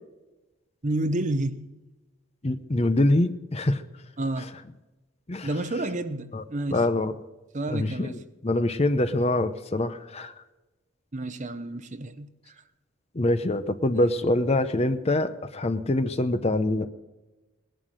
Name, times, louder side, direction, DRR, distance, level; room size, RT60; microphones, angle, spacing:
voice 1, 0.8-1.7 4.2-4.5 5.4-6.8 7.5-8.2 11.1-12.6, right 1 dB, 35° right, 0.8 m, -30 dB
voice 2, 2.4-3.8 5.3-5.5 6.3-6.4 6.7-7.1 7.7-10.3 13.1-16.9, left 1 dB, 30° left, 0.7 m, -24 dB
19.5 x 11.5 x 6.4 m
head